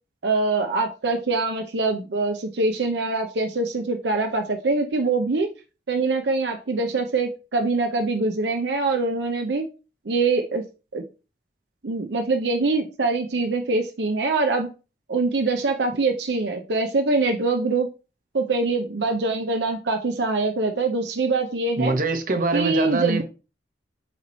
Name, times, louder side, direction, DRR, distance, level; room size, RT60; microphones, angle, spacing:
voice 1, 0.2-5.5 5.9-9.6 10.1-10.6 10.9-11.0 11.8-14.7 15.1-17.9 18.3-21.9 22.5-23.2, right 3 dB, 75° right, 0.7 m, -24 dB
voice 2, 21.8-23.2, right 3 dB, 50° right, 1.0 m, -24 dB
8.1 x 3.1 x 4.2 m
head